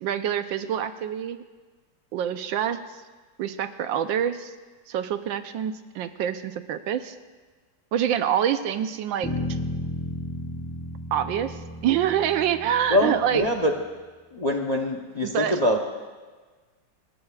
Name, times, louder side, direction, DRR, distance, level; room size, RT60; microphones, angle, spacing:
voice 1, 0.0-1.4 2.1-3.0 3.4-4.5 4.9-7.1 7.9-9.6 11.1-13.4 15.2-15.6, right 9 dB, 85° right, 10 dB, 1.5 m, -26 dB
Bass guitar, 9.2-13.7, left 1 dB, 10° left, 3.2 m, -34 dB
voice 2, 12.9-13.7 14.3-15.8, left 1 dB, 30° left, 3 dB, 0.7 m, -24 dB
29.5 x 14.0 x 2.4 m, 1.4 s
omnidirectional pair, 2.0 m